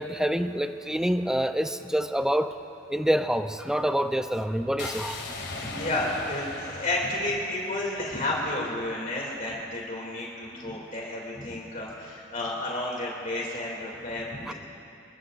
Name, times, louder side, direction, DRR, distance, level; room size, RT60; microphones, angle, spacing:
voice 1, 0.0-2.5 2.9-5.2 14.5-14.6, equal, 5° right, 8 dB, 0.5 m, -26 dB
Wet Air, 4.8-8.8, left 3 dB, 65° left, 1.8 m, -39 dB
voice 2, 5.4-14.5, left 1 dB, 45° left, -3 dB, 2.5 m, -31 dB
25.5 x 22.0 x 2.5 m, 2.7 s
head